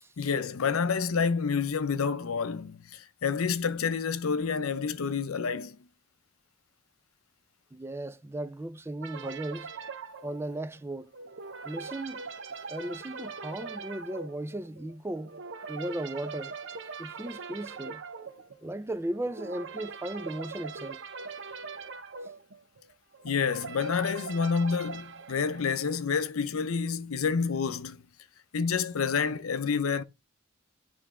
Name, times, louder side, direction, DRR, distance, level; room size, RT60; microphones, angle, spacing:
voice 1, 0.2-5.8 23.2-28.0 28.5-30.0, left 5 dB, 80° left, 0.6 m, -28 dB
voice 2, 7.7-9.7 10.2-11.1 11.6-12.2 12.7-15.4 15.7-16.5 17.0-18.0 18.6-21.0, right 1 dB, 10° right, 0.4 m, -36 dB
sound 1, 9.0-26.2, right 5 dB, 60° right, 0.8 m, -42 dB
9.9 x 3.4 x 3.7 m
head